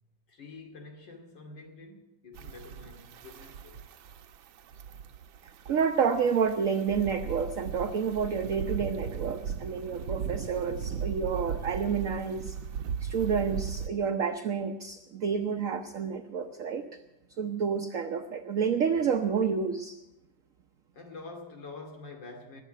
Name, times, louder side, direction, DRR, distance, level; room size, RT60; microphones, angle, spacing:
voice 1, 0.3-3.8 20.9-22.6, left 3 dB, 70° left, 3 dB, 3.2 m, -46 dB
sound 1, 2.3-13.9, right 7 dB, 85° right, 1.6 m, -37 dB
voice 2, 5.7-12.5 13.0-16.8 17.4-20.0, right 6 dB, 55° right, 5 dB, 1.0 m, -29 dB
20.0 x 7.7 x 9.0 m, 0.95 s
omnidirectional pair, 2.1 m